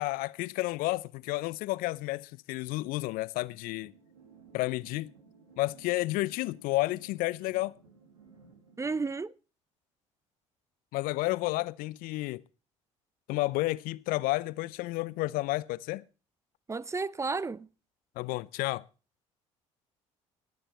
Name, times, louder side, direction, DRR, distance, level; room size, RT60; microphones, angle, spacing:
voice 1, 0.0-3.9 4.5-5.1 5.6-7.8 10.9-12.4 13.3-16.0 18.2-18.8, left 19 dB, 60° left, 0.6 m, -31 dB
sound 1, 3.8-9.1, right 5 dB, 85° right, 1.9 m, -57 dB
voice 2, 8.8-9.3 16.7-17.7, right 4 dB, 15° right, 0.7 m, -32 dB
21.5 x 9.0 x 4.3 m
figure-of-eight pair, 55°, 16 cm